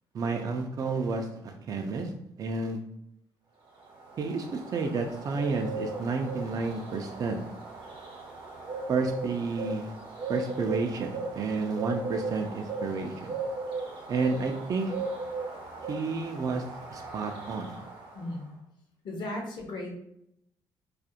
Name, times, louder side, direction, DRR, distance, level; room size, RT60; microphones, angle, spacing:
voice 1, 0.1-2.1 2.4-2.8 4.2-7.4 8.9-9.9 10.3-13.4 14.1-15.0 15.9-17.8, right 4 dB, 45° right, 3 dB, 0.3 m, -31 dB
Bird, 3.7-18.4, right 3 dB, 65° right, 0.7 m, -38 dB
voice 2, 18.1-18.5 19.0-20.0, left 1 dB, 60° left, 0 dB, 0.7 m, -36 dB
2.4 x 2.0 x 2.7 m, 0.77 s
cardioid pair, 85°, 9 cm